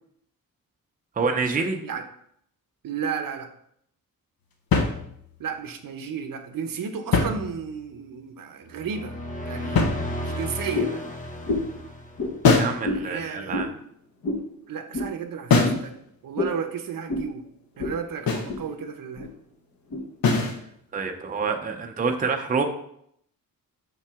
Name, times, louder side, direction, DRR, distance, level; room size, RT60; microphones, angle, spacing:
voice 1, 1.2-1.8 12.5-13.7 20.9-22.7, right 4 dB, 25° right, 4 dB, 0.5 m, -27 dB
voice 2, 2.8-3.5 5.4-9.1 9.4-9.8 10.2-11.1 12.9-13.8 14.7-17.4 17.8-19.3, right 6 dB, 70° right, 7 dB, 0.8 m, -33 dB
sound 1, 4.7-5.5 6.9-8.0 9.7-10.5 12.4-12.9 15.5-15.9 18.3-18.6 20.2-20.6, left 4 dB, 80° left, 1.0 m, -22 dB
sound 2, 8.7-12.6, equal, 20° left, 0.9 m, -34 dB
sound 3, 10.7-11.0 11.4-11.8 12.2-12.3 12.8-13.1 13.5-13.7 14.2-14.5 14.9-15.1 15.6-15.8 16.4-16.6 17.1-17.3 17.8-18.0 18.3-18.6 19.2-19.3 19.9-20.0, left 2 dB, 50° left, 1.2 m, -28 dB
5.9 x 5.5 x 3.5 m, 0.71 s
wide cardioid pair, 145°, 35 cm